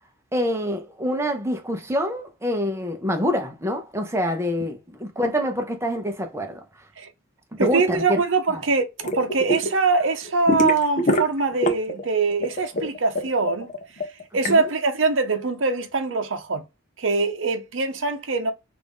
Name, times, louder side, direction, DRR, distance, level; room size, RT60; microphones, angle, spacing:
voice 1, 0.3-6.6 7.5-8.2 8.5-8.6 14.5-14.7, equal, 15° right, 0.7 m, -26 dB
voice 2, 7.6-8.9 9.1-13.7 14.3-16.6 17.0-18.5, right 3 dB, 65° right, 0.7 m, -23 dB
sound 1, 9.0-9.7 10.0-12.0 12.3-14.5, equal, 35° left, 0.7 m, -24 dB
3.4 x 2.6 x 3.5 m
head